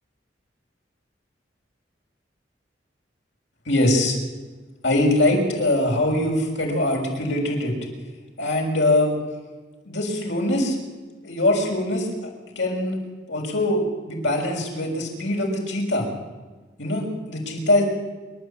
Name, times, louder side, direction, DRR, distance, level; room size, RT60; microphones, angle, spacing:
voice 1, 3.7-4.2 4.8-7.7 8.4-9.1 9.8-10.8 11.2-12.3 12.5-13.0 13.3-16.1 16.8-17.8, left 1 dB, 85° left, 0 dB, 6.6 m, -22 dB
28.5 x 13.0 x 8.8 m, 1.3 s
head